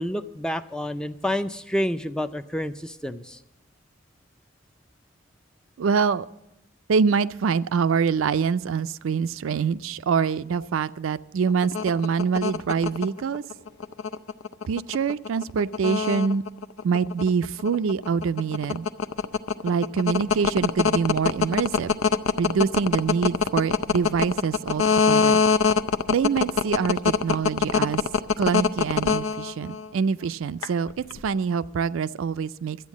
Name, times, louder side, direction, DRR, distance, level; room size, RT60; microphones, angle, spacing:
voice 1, 0.0-3.4, equal, 5° left, 10 dB, 0.4 m, -29 dB
voice 2, 5.8-6.3 6.9-13.4 14.7-16.4 16.8-18.9 19.6-22.0 22.4-25.4 26.1-28.0 28.4-32.8, right 6 dB, 75° right, 14 dB, 0.4 m, -25 dB
sound 1, 11.5-29.9 30.6-31.2, left 5 dB, 90° left, 0.6 m, -22 dB
12.5 x 9.0 x 7.2 m, 0.94 s
head